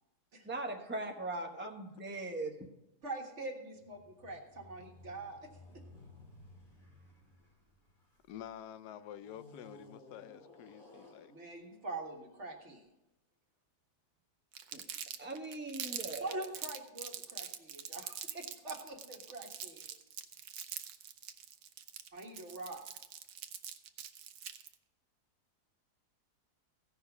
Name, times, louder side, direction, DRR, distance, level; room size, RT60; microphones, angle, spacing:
voice 1, 0.4-2.7 14.7-14.8 15.2-16.4, right 2 dB, 10° right, 2 dB, 0.9 m, -40 dB
voice 2, 3.0-5.4 11.3-12.8 16.2-19.9 22.1-22.8, right 2 dB, 45° right, 1 dB, 1.9 m, -44 dB
sound 1, 3.7-8.4 9.2-12.6, left 2 dB, 30° left, 2.4 m, -58 dB
voice 3, 8.3-11.3, left 10 dB, 85° left, 14 dB, 1.2 m, -49 dB
Crumpling crinkling, 14.5-24.7, right 9 dB, 80° right, 1.3 m, -44 dB
16.0 x 5.7 x 5.9 m, 0.89 s
omnidirectional pair, 1.7 m